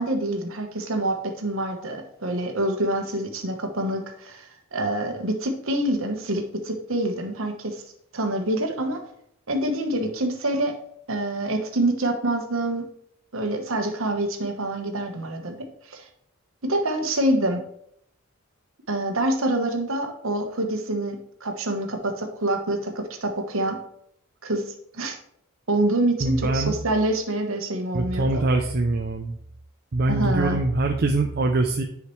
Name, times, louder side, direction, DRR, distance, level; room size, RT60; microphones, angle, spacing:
voice 1, 0.0-7.8 8.1-9.0 9.5-10.8 11.1-12.9 13.3-16.1 16.6-17.6 18.9-23.8 24.4-25.2 25.7-28.4 30.1-30.6, right 1 dB, 60° right, 4 dB, 1.2 m, -26 dB
voice 2, 26.2-26.8 27.9-29.4 29.9-31.8, right 2 dB, 45° right, 3 dB, 0.5 m, -23 dB
9.8 x 4.9 x 3.2 m, 0.71 s
head